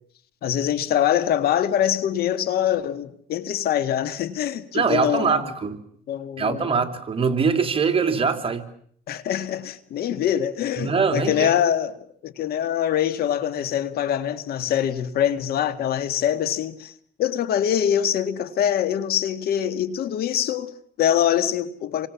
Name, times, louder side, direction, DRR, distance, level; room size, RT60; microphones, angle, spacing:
voice 1, 0.4-5.4 6.1-6.7 9.1-16.9 17.2-22.1, left 10 dB, 65° left, 2.1 m, -24 dB
voice 2, 4.7-5.8 6.4-8.6 10.8-11.5, right 5 dB, 35° right, 3.5 m, -22 dB
29.0 x 24.5 x 7.3 m
cardioid pair, 110°, 17 cm